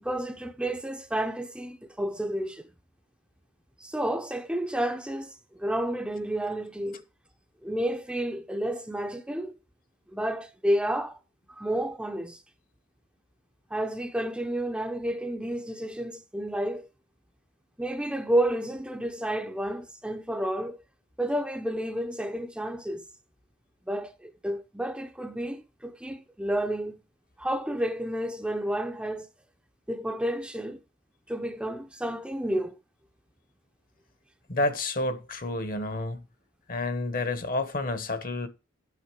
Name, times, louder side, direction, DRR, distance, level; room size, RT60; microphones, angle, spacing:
voice 1, 0.0-2.7 3.8-7.0 7.6-9.6 10.1-11.2 11.6-12.4 13.7-16.9 17.8-20.8 21.2-23.0 23.9-27.0 27.4-29.3 29.9-30.8 31.3-32.8, right 1 dB, 5° right, 0.6 m, -30 dB
voice 2, 34.5-36.2 36.7-38.5, left 2 dB, 45° left, 1.1 m, -29 dB
9.4 x 6.3 x 4.6 m
head